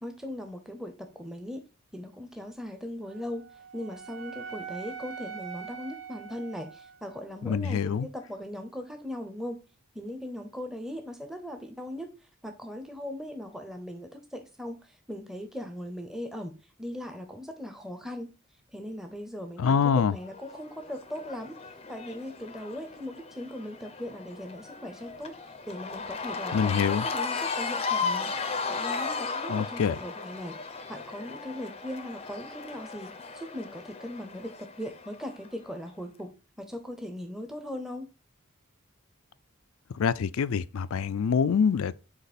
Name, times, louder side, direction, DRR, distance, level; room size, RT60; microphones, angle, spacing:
voice 1, 0.0-1.6 1.9-3.5 3.7-9.6 9.9-12.1 12.4-16.5 16.8-18.3 18.7-21.6 21.9-25.4 25.7-28.3 28.7-30.6 30.9-38.1, left 1 dB, ahead, 0.7 m, -39 dB
Wind instrument woodwind instrument, 3.0-7.2, right 7 dB, 70° right, 1.0 m, -43 dB
voice 2, 7.4-8.1 19.6-20.1 26.5-27.1 29.5-30.0 39.9-42.0, left 6 dB, 75° left, 0.4 m, -25 dB
Cheering / Crowd, 20.2-35.5, left 4 dB, 30° left, 0.5 m, -35 dB
8.0 x 3.0 x 4.2 m
head